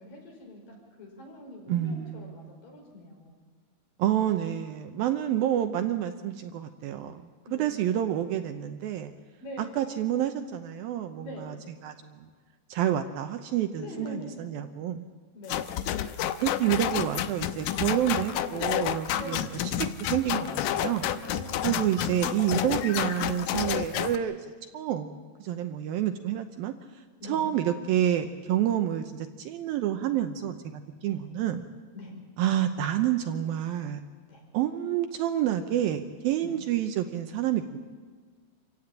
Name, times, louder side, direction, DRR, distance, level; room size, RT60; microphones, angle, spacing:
voice 1, 0.0-3.4 7.5-7.9 9.4-9.8 11.2-11.5 13.8-14.4 15.3-15.6 19.1-19.5 21.3-21.9 27.2-27.5 31.0-31.2 31.9-32.1 34.3-34.4 36.4-36.5, left 1 dB, 55° left, 0 dB, 6.6 m, -43 dB
voice 2, 1.7-2.5 4.0-7.2 7.5-9.1 9.8-11.6 11.8-12.3 12.7-15.1 16.4-19.5 19.8-21.1 21.6-24.4 24.7-26.7 27.3-31.7 32.4-34.0 34.5-37.8, right 11 dB, 75° right, 7 dB, 2.4 m, -28 dB
sound 1, 15.5-24.2, left 11 dB, 80° left, 1.8 m, -30 dB
27.0 x 15.5 x 8.9 m, 1.5 s
omnidirectional pair, 4.7 m